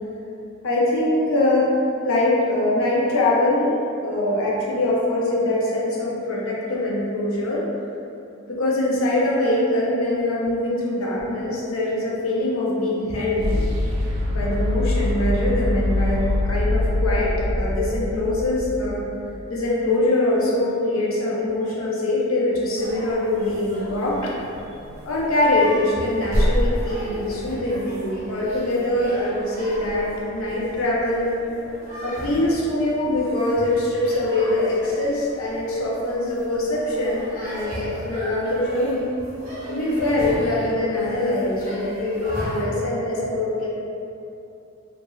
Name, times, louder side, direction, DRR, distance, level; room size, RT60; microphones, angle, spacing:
voice 1, 0.6-1.7 2.0-3.7 4.0-7.6 8.5-13.5 14.3-19.0 19.5-24.3 25.1-31.4 32.0-39.1 39.7-43.7, left 1 dB, 80° left, -5 dB, 0.6 m, -23 dB
sound 1, 11.2-19.3, left 1 dB, 75° right, 0.4 m, -25 dB
sound 2, 22.8-42.7, equal, 35° right, 0.9 m, -33 dB
3.0 x 2.5 x 2.3 m, 2.7 s
head